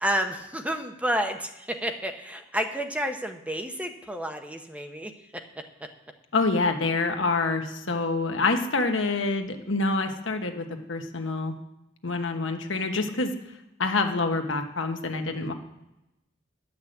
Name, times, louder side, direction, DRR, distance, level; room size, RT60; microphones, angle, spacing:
voice 1, 0.0-5.4, equal, 5° right, 5 dB, 0.8 m, -30 dB
voice 2, 6.3-11.5 12.0-13.3 13.8-15.5, left 3 dB, 75° left, 4 dB, 1.2 m, -26 dB
11.0 x 5.8 x 7.8 m, 0.93 s
head